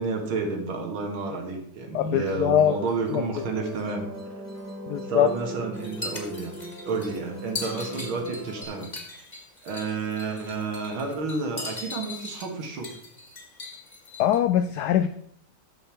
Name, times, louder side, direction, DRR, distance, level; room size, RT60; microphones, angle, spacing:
voice 1, 0.0-4.1 5.0-6.6 6.8-9.2 9.6-12.9, right 3 dB, 80° right, 3 dB, 2.4 m, -30 dB
voice 2, 1.9-2.8 3.1-3.2 4.9-5.3 14.2-15.1, left 10 dB, 75° left, 11 dB, 0.9 m, -22 dB
Musical instrument, 2.2-8.6, right 1 dB, 10° right, 0.9 m, -40 dB
sound 1, 5.7-14.4, left 3 dB, 20° left, 1.9 m, -39 dB
13.5 x 5.4 x 4.4 m, 0.66 s
omnidirectional pair, 2.2 m